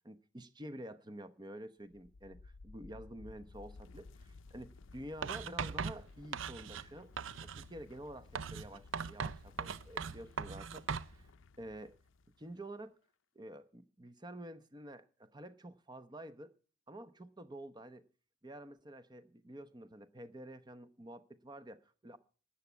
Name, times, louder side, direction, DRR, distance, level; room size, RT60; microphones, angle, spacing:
voice 1, 0.0-7.1 7.4-11.3 11.6-12.0 12.4-13.0 13.3-16.5 16.9-18.1 18.4-22.2, right 1 dB, 20° right, 12 dB, 0.9 m, -49 dB
sound 1, 1.8-12.6, left 3 dB, 80° left, 0.6 m, -57 dB
Writing, 5.2-6.9 7.2-7.7 8.3-11.1, right 6 dB, 80° right, 0.6 m, -39 dB
13.0 x 8.5 x 8.1 m, 0.40 s
head